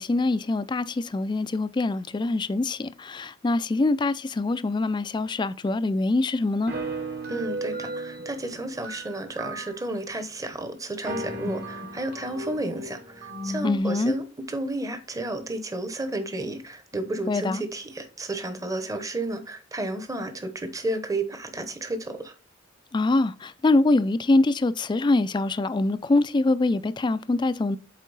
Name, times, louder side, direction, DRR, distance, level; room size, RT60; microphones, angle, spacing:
voice 1, 0.0-6.7 13.6-14.1 17.3-17.6 22.9-27.8, left 2 dB, 25° left, 0.3 m, -24 dB
sound 1, 6.7-10.0 10.5-10.6 10.9-13.8, right 1 dB, 55° right, 1.7 m, -35 dB
voice 2, 7.3-22.3, right 2 dB, 20° right, 0.9 m, -32 dB
8.3 x 3.7 x 4.0 m
head